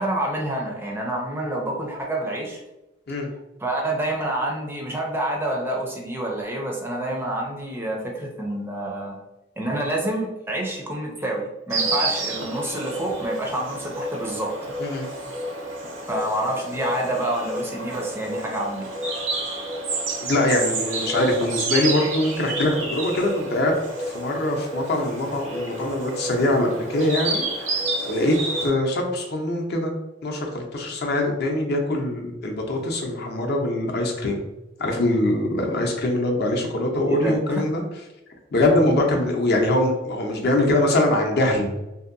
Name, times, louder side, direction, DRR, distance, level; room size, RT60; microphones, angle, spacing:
voice 1, 0.0-2.6 3.6-9.2 9.6-14.5 16.1-18.9 37.1-37.6, right 1 dB, 10° right, -1 dB, 0.4 m, -28 dB
Insect, 11.7-28.7, right 2 dB, 90° right, 0.7 m, -30 dB
voice 2, 20.2-23.7 24.0-28.4 28.6-29.9 30.2-34.4 34.8-37.8 38.5-41.7, left 1 dB, 55° left, 1 dB, 0.6 m, -23 dB
2.7 x 2.6 x 2.5 m, 0.96 s
head